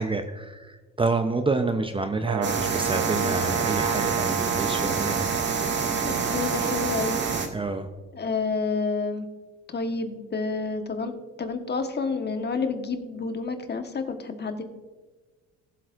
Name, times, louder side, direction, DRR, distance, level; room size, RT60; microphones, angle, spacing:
voice 1, 0.0-5.4 7.5-7.9, right 3 dB, 15° right, 7 dB, 0.7 m, -28 dB
Brass instrument, 2.2-7.5, right 8 dB, 80° right, 0.7 m, -29 dB
sound 1, 2.4-7.5, right 3 dB, 35° right, 1.9 m, -29 dB
voice 2, 3.1-3.5 6.0-7.2 8.1-9.3 9.7-11.1 11.4-14.6, left 4 dB, 35° left, 6 dB, 1.3 m, -29 dB
19.0 x 7.6 x 2.6 m, 1.3 s
supercardioid pair, 75°, 30 cm